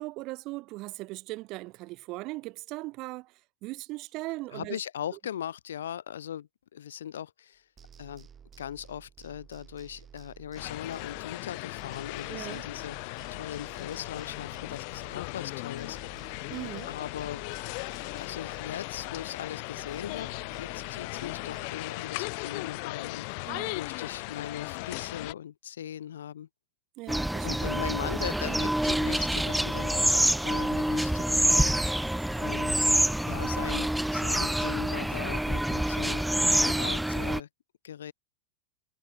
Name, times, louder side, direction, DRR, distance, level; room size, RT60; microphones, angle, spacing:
voice 1, 0.0-3.3 3.6-4.8 12.3-12.6 16.5-16.9 23.5-23.8 27.0-27.7, right 21 dB, 40° right, 1.7 m, -39 dB
voice 2, 4.5-7.6 8.0-8.3 8.6-16.0 16.9-17.4 18.1-20.3 20.6-26.5 27.4-31.7 32.4-32.9 33.2-36.3 36.5-37.5 37.8-38.1, left 10 dB, 65° left, 1.2 m, -39 dB
sound 1, 7.8-11.5 11.8-15.5 15.8-19.5 19.8-21.7, right 7 dB, 20° right, 3.5 m, -53 dB
sound 2, 10.5-25.3, left 36 dB, 45° left, 0.7 m, -37 dB
sound 3, 27.1-37.4, right 1 dB, ahead, 0.3 m, -26 dB
figure-of-eight pair, 90°, 0 cm